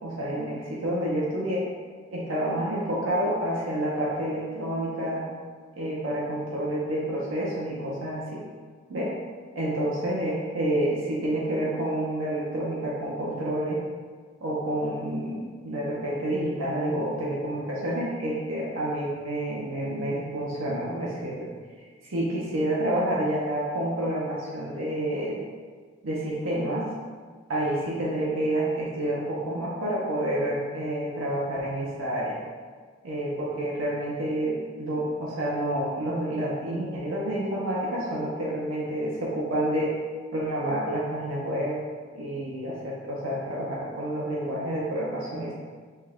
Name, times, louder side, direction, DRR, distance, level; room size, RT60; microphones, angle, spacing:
voice 1, 0.0-1.6 2.1-5.3 5.8-8.4 8.9-9.1 9.5-13.8 14.4-21.5 22.0-25.4 26.0-26.9 27.5-32.4 33.0-40.0 40.3-41.8 42.1-45.5, right 1 dB, 90° right, -5 dB, 0.8 m, -29 dB
5.7 x 2.2 x 3.5 m, 1.5 s
head